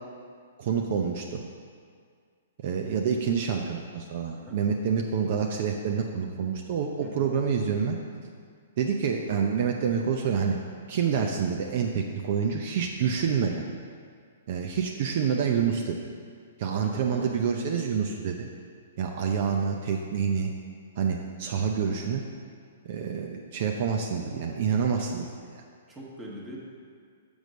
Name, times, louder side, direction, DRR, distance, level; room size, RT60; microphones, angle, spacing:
voice 1, 0.6-1.4 2.6-8.0 8.8-10.6 10.9-13.6 14.5-16.0 16.6-18.5 19.0-20.5 21.0-22.2 22.8-25.2, right 6 dB, 50° right, 2 dB, 0.6 m, -27 dB
voice 2, 3.1-3.7 4.3-4.6 7.0-7.3 16.8-17.3 25.1-25.2 25.9-26.6, right 1 dB, 10° right, -4 dB, 1.4 m, -42 dB
6.3 x 5.3 x 6.2 m, 2.1 s
hypercardioid pair, 150°, 0 cm